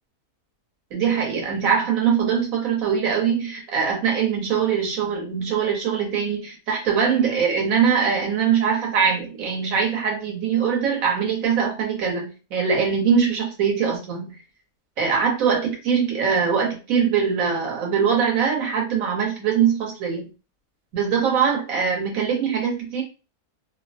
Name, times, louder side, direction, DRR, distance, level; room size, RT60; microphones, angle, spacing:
voice 1, 0.9-14.4 15.0-20.3 20.9-23.0, right 6 dB, 65° right, -1 dB, 1.3 m, -22 dB
2.9 x 2.1 x 2.5 m, 0.31 s
omnidirectional pair, 1.6 m